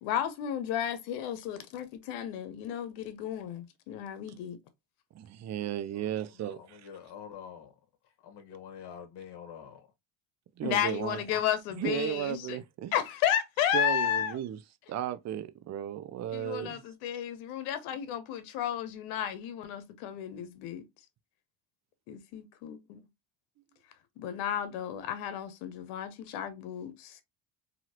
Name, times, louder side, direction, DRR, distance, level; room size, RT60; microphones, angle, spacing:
voice 1, 0.0-4.6 10.6-12.6 12.9-14.4 16.3-20.8 22.1-23.1 24.2-27.2, left 10 dB, 80° left, 0.8 m, -33 dB
voice 2, 5.1-6.8 10.6-11.2 11.8-12.9 13.7-14.6 14.9-16.8, right 11 dB, 35° right, 0.5 m, -35 dB
voice 3, 5.9-7.8 8.2-9.9, left 8 dB, 55° left, 1.2 m, -47 dB
2.9 x 2.8 x 2.7 m
supercardioid pair, 75°, 48 cm